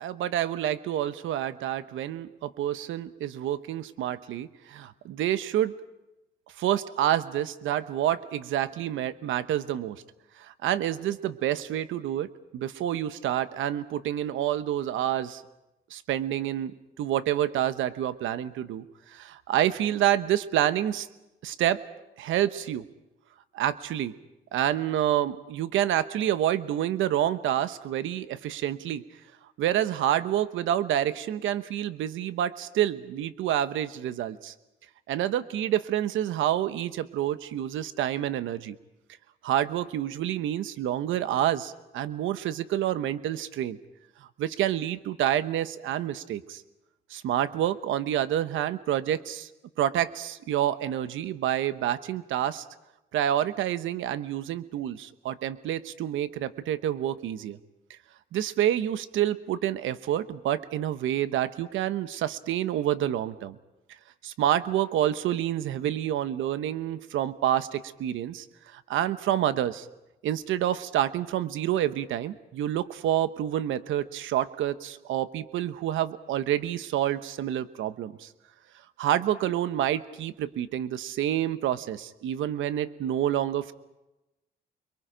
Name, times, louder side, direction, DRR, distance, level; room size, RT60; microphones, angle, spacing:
voice 1, 0.0-5.7 6.6-10.0 10.4-12.3 12.5-15.4 15.9-21.1 21.4-21.8 22.2-22.8 23.5-24.1 24.5-29.0 29.6-34.5 35.1-38.8 39.4-43.8 44.4-46.6 47.1-49.5 49.8-52.6 53.1-57.6 58.3-63.5 64.2-69.9 70.2-78.3 79.0-83.7, right 11 dB, 85° right, 13 dB, 1.0 m, -28 dB
30.0 x 22.5 x 5.1 m, 0.96 s
cardioid pair, 90°, 20 cm